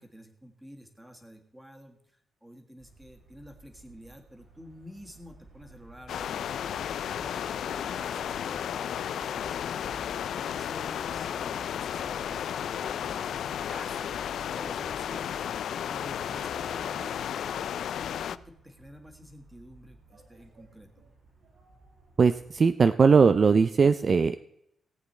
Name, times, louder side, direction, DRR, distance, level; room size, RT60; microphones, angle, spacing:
voice 1, 0.0-6.7 7.1-9.9 10.3-14.2 14.5-15.3 15.8-17.8 18.1-20.9, equal, 5° right, 3 dB, 1.7 m, -50 dB
sound 1, 2.8-22.7, right 2 dB, 70° right, 5.1 m, -54 dB
sound 2, 6.1-18.4, left 9 dB, 80° left, 0.3 m, -33 dB
voice 2, 22.2-24.4, right 5 dB, 40° right, 11 dB, 0.4 m, -20 dB
18.0 x 8.3 x 4.2 m, 0.77 s
wide cardioid pair, 140°, 0 cm